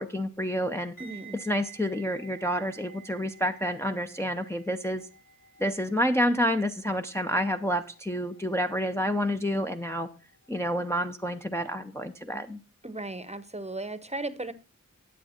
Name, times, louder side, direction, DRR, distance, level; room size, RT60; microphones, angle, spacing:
voice 1, 0.0-1.0 1.4-5.1 5.6-10.1 10.5-12.6, equal, 10° left, 0.6 m, -29 dB
sound 1, 1.0-9.9 10.2-10.5, right 6 dB, 85° left, 3.0 m, -52 dB
voice 2, 1.0-1.4 12.8-14.5, right 2 dB, 20° right, 0.8 m, -36 dB
10.0 x 8.2 x 4.3 m
wide cardioid pair, 45°, 32 cm